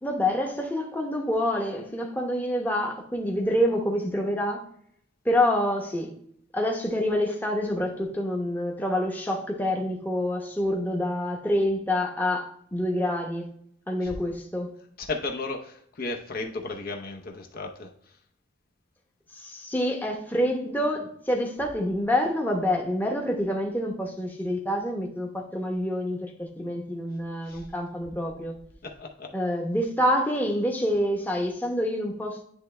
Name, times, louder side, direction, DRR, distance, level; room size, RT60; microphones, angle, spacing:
voice 1, 0.0-4.6 5.2-6.1 6.5-13.5 13.9-14.7 19.3-28.5 29.3-32.4, left 1 dB, 10° left, 0.8 m, -27 dB
voice 2, 15.0-17.9 27.5-27.7 28.8-29.3, left 3 dB, 45° left, 0.7 m, -34 dB
10.0 x 3.3 x 3.2 m
head